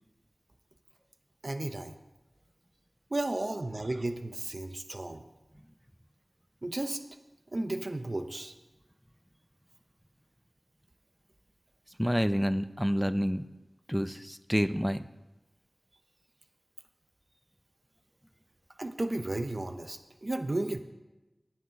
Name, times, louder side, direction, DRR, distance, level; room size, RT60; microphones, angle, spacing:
voice 1, 1.4-1.9 3.1-5.2 6.6-7.0 7.5-8.5 18.8-20.8, right 2 dB, 55° right, 8 dB, 0.8 m, -33 dB
voice 2, 12.0-13.4 13.9-15.1, equal, ahead, 12 dB, 0.5 m, -28 dB
9.5 x 9.4 x 5.8 m, 1.1 s
wide cardioid pair, 45°, 0 cm